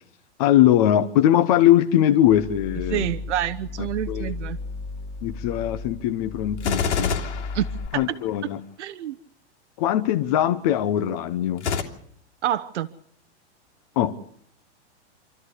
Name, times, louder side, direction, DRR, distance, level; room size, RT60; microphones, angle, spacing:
voice 1, 0.4-3.1 3.8-4.3 5.2-7.2 7.9-8.6 9.8-11.7 14.0-14.1, left 12 dB, 35° left, 8 dB, 0.9 m, -21 dB
sound 1, 2.2-7.9, left 3 dB, 15° left, 1.6 m, -34 dB
voice 2, 2.9-4.6 7.5-7.7 7.9-8.0 8.8-9.2 12.4-12.9, right 12 dB, 85° right, 11 dB, 1.0 m, -27 dB
Gunshot gunfire, 6.6-8.4 11.6-11.8, left 6 dB, 85° left, 3.0 m, -26 dB
27.5 x 13.0 x 8.2 m, 0.67 s
supercardioid pair, 170°, 34 cm